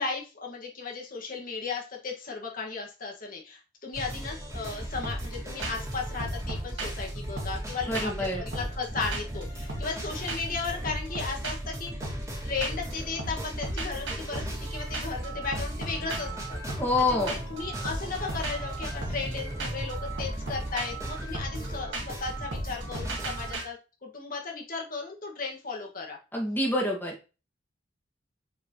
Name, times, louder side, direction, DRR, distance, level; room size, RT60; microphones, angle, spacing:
voice 1, 0.0-12.1 12.4-16.6 17.1-26.2, left 4 dB, 45° left, 0 dB, 1.9 m, -35 dB
sound 1, 3.9-23.5, right 1 dB, 15° right, 2.2 m, -37 dB
sound 2, 5.0-5.4 5.6-5.9 6.2-8.3 8.5-10.0 10.3-10.6 10.9-12.9 13.2-23.6, right 2 dB, 70° right, 2.0 m, -37 dB
voice 2, 7.9-8.4 16.8-17.4 26.3-27.1, left 2 dB, 10° left, -2 dB, 2.0 m, -26 dB
8.3 x 4.9 x 3.1 m, 0.31 s
head